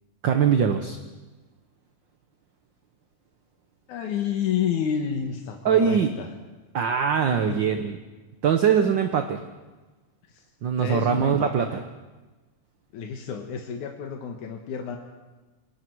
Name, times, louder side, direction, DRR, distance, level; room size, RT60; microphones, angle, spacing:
voice 1, 0.2-1.0 5.6-6.1 6.7-8.0 8.4-9.4 10.6-11.8, right 7 dB, 60° right, 6 dB, 1.2 m, -22 dB
voice 2, 3.9-6.3 7.3-7.7 10.3-10.4 10.8-11.7 12.9-15.0, left 7 dB, 90° left, 2 dB, 2.8 m, -30 dB
28.5 x 21.0 x 4.7 m, 1.2 s
omnidirectional pair, 3.4 m